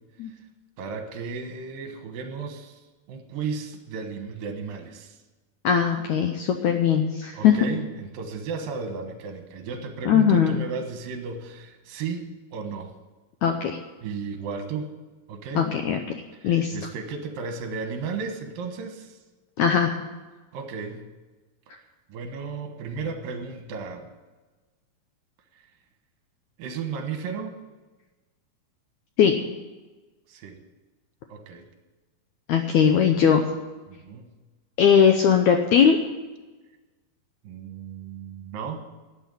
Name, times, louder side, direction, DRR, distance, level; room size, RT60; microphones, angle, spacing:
voice 1, 0.8-2.8 3.1-5.2 7.3-12.9 14.0-14.9 15.3-15.7 16.4-19.2 20.5-21.1 22.1-24.1 26.6-27.6 30.3-30.6 31.3-31.7 33.9-34.3 37.4-38.8, right 5 dB, 75° right, 6 dB, 3.0 m, -34 dB
voice 2, 5.6-7.6 10.1-10.6 13.4-13.8 15.6-16.0 16.4-16.8 19.6-19.9 29.2-29.4 32.5-33.4 34.8-36.0, left 7 dB, 75° left, 5 dB, 1.8 m, -19 dB
12.5 x 8.4 x 9.1 m, 1.2 s
omnidirectional pair, 4.2 m